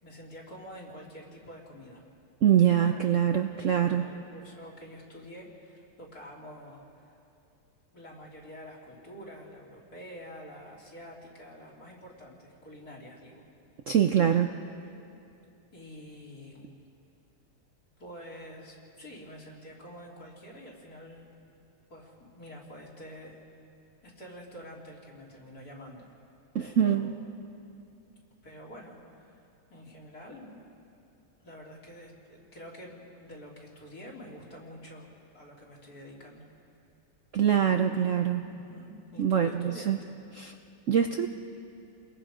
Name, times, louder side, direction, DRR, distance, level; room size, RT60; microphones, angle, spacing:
voice 1, 0.0-2.0 2.7-3.2 3.5-7.3 7.9-13.5 15.7-16.7 18.0-21.3 21.9-23.4 24.0-26.1 26.6-27.3 28.4-30.6 31.4-36.5 38.4-40.2, equal, 45° left, -2 dB, 3.7 m, -47 dB
voice 2, 2.4-4.0 13.9-14.5 26.5-27.1 37.3-38.4 39.2-40.0 40.3-40.5 40.9-41.3, right 9 dB, 85° right, 6 dB, 0.6 m, -24 dB
29.5 x 22.0 x 5.0 m, 2.6 s
omnidirectional pair, 2.2 m